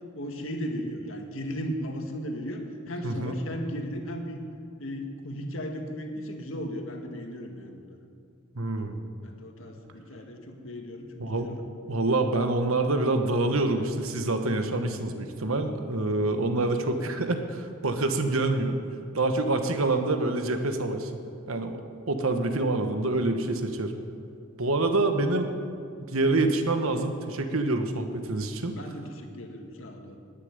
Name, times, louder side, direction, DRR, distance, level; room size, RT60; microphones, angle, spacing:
voice 1, 0.1-4.4 4.8-8.0 9.2-11.1 11.4-11.6 28.7-30.2, equal, 75° left, 3 dB, 1.8 m, -36 dB
voice 2, 3.0-3.4 8.5-9.0 11.2-11.5 11.9-18.8 19.1-21.1 21.5-21.8 22.1-23.9 24.6-25.5 26.1-28.8, right 2 dB, 90° right, 7 dB, 1.3 m, -26 dB
11.5 x 9.9 x 9.6 m, 2.5 s
head